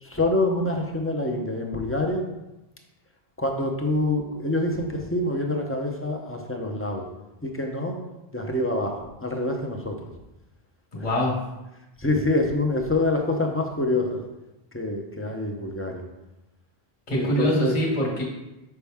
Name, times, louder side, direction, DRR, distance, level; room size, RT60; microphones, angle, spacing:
voice 1, 0.0-2.2 3.4-7.1 7.4-8.0 8.3-10.1 12.0-14.2 14.7-16.0 17.1-17.8, left 2 dB, 15° left, 2 dB, 0.6 m, -26 dB
voice 2, 10.9-11.3 17.1-18.2, equal, 40° left, -3 dB, 1.3 m, -24 dB
5.6 x 5.3 x 3.5 m, 0.98 s
omnidirectional pair, 1.0 m